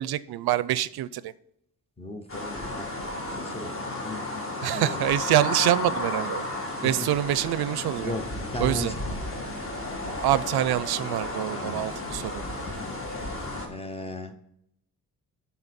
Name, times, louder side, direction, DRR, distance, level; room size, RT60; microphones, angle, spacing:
voice 1, 0.0-1.3 4.6-6.5 6.8-8.1 8.6-8.9 10.2-12.4, right 13 dB, 90° right, 17 dB, 0.5 m, -25 dB
voice 2, 2.0-5.1 6.8-7.2 8.0-9.2 11.6-11.9 12.7-12.9 13.7-14.3, left 2 dB, 15° left, 7 dB, 0.6 m, -37 dB
sound 1, 2.3-13.7, left 2 dB, 35° left, 1.5 m, -33 dB
11.0 x 4.2 x 4.2 m, 0.75 s
wide cardioid pair, 175°, 37 cm